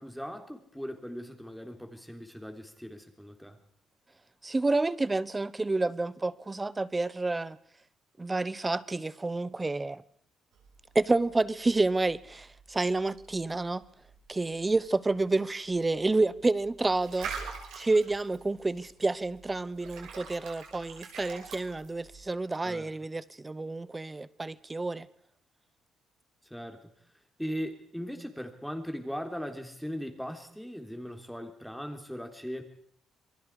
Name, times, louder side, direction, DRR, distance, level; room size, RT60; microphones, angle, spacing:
voice 1, 0.0-3.6 22.6-22.9 26.4-26.9 27.4-32.6, equal, ahead, 3.6 m, -39 dB
voice 2, 4.4-7.6 8.2-10.0 10.9-13.8 14.3-17.3 17.8-25.1, right 2 dB, 20° right, 1.0 m, -29 dB
sound 1, 10.5-22.2, right 6 dB, 85° right, 5.9 m, -46 dB
27.5 x 22.0 x 4.9 m
cardioid pair, 90°, 0 cm